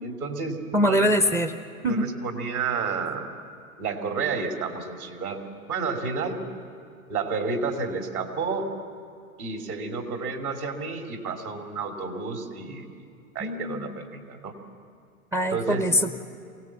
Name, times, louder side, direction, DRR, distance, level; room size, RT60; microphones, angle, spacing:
voice 1, 0.0-1.1 1.8-3.3 3.8-5.4 5.7-6.4 7.1-8.7 9.4-12.9 13.3-14.5 15.5-15.9, right 4 dB, 80° right, 3 dB, 2.8 m, -30 dB
voice 2, 0.7-1.5 1.8-2.1 13.4-14.0 15.3-16.1, equal, 5° right, 9 dB, 0.4 m, -23 dB
23.0 x 17.5 x 7.3 m, 2.4 s
hypercardioid pair, 105°, 43 cm